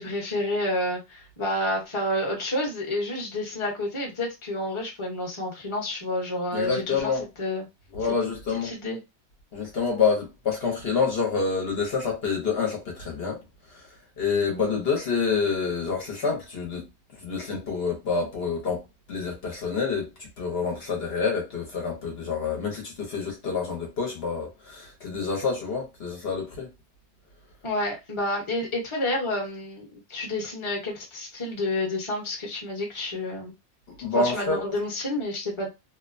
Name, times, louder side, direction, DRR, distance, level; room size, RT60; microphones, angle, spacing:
voice 1, 0.0-7.1 7.4-7.6 8.6-9.0 27.6-33.5 34.2-35.7, left 1 dB, 30° left, 0.9 m, -29 dB
voice 2, 6.5-7.3 7.9-8.7 9.5-13.4 13.7-16.9 17.2-18.8 19.1-26.7 34.0-34.6, left 5 dB, 60° left, 1.0 m, -27 dB
2.8 x 2.1 x 2.5 m
omnidirectional pair, 1.2 m